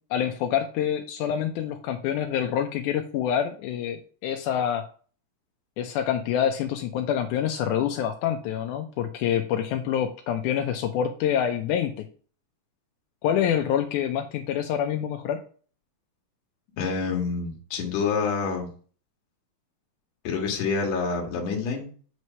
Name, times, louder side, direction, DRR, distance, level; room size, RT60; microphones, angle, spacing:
voice 1, 0.1-4.8 5.8-12.1 13.2-15.4, left 9 dB, 85° left, 5 dB, 2.1 m, -26 dB
voice 2, 16.8-18.7 20.2-21.9, left 5 dB, 65° left, 0 dB, 2.4 m, -27 dB
8.2 x 3.2 x 5.5 m, 0.42 s
omnidirectional pair, 3.5 m